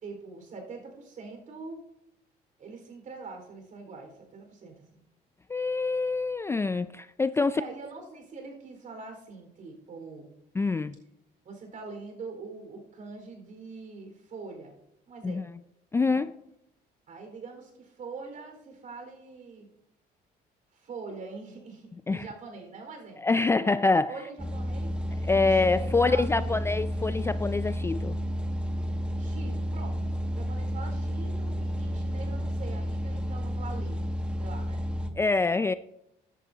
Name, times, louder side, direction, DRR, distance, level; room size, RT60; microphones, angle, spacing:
voice 1, 0.0-1.8 2.6-5.0 7.4-10.3 11.4-14.7 15.1-15.4 16.1-16.2 17.1-19.7 20.7-23.2 24.1-24.9 25.3-26.5 29.2-30.0 30.3-34.1 34.4-34.8, right 4 dB, 50° right, 3 dB, 4.5 m, -43 dB
voice 2, 5.5-7.6 10.6-11.0 15.2-15.4 15.9-16.3 22.1-22.3 23.2-24.1 25.2-28.2 35.2-35.7, left 3 dB, 15° left, 13 dB, 0.3 m, -25 dB
sound 1, 24.4-35.1, equal, 5° right, 1.4 m, -31 dB
15.5 x 11.0 x 2.8 m, 0.81 s
cardioid pair, 110°, 17 cm